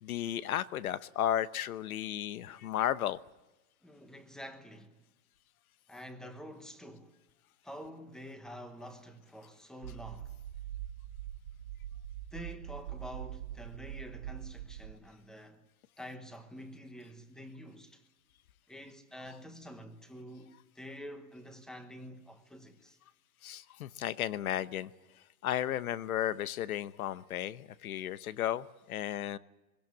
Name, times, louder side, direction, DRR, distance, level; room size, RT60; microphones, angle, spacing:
voice 1, 0.0-3.2 23.4-24.9 25.4-29.4, left 11 dB, 90° left, 1.1 m, -34 dB
voice 2, 3.8-5.0 5.9-7.2 7.6-10.3 12.3-15.6 16.0-18.0 18.7-23.0, equal, ahead, 1.1 m, -48 dB
sound 1, 9.8-14.9, right 12 dB, 75° right, 1.9 m, -43 dB
22.5 x 17.0 x 8.5 m
supercardioid pair, 160°, 42 cm